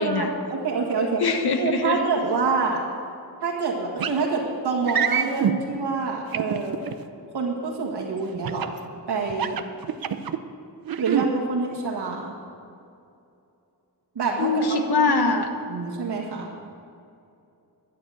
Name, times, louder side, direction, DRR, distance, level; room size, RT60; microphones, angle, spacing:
voice 1, 0.0-1.2 1.6-2.9 3.4-6.8 7.3-8.8 9.1-9.6 11.0-12.4 14.2-14.9 15.7-16.5, right 4 dB, 80° right, -3 dB, 1.8 m, -26 dB
voice 2, 1.2-2.0 10.1-10.2 14.4-15.5, left 3 dB, 70° left, 6 dB, 1.2 m, -23 dB
sound 1, 4.0-4.2 4.9-5.6 6.3-6.9 8.4-8.8 9.3-10.4 10.9-11.3, right 8 dB, 60° right, 0.7 m, -25 dB
12.0 x 6.8 x 8.5 m, 2.5 s
wide cardioid pair, 105°, 40 cm